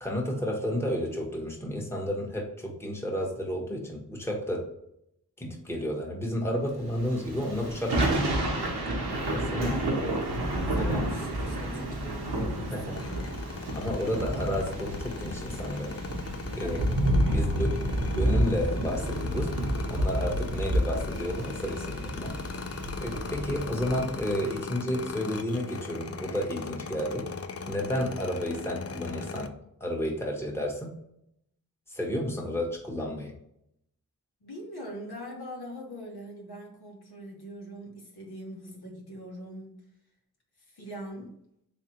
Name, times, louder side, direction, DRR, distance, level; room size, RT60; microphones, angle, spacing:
voice 1, 0.0-4.6 5.4-8.7 9.3-10.2 10.8-11.1 12.6-12.8 13.7-16.0 16.5-16.8 17.3-17.8 18.1-19.5 19.9-22.4 23.0-27.3 27.7-29.5 29.8-30.9 31.9-33.3, equal, 5° left, -1 dB, 1.1 m, -31 dB
Thunder / Rain, 7.0-24.5, right 1 dB, 85° right, 0.9 m, -30 dB
voice 2, 9.5-10.0 10.6-13.1 16.6-16.9 17.2-18.0 34.4-39.8 40.7-41.3, equal, 75° left, -1 dB, 1.2 m, -42 dB
sound 1, 12.9-29.5, left 5 dB, 40° left, 0.4 m, -39 dB
3.5 x 3.2 x 2.8 m, 0.76 s
cardioid pair, 50°, 38 cm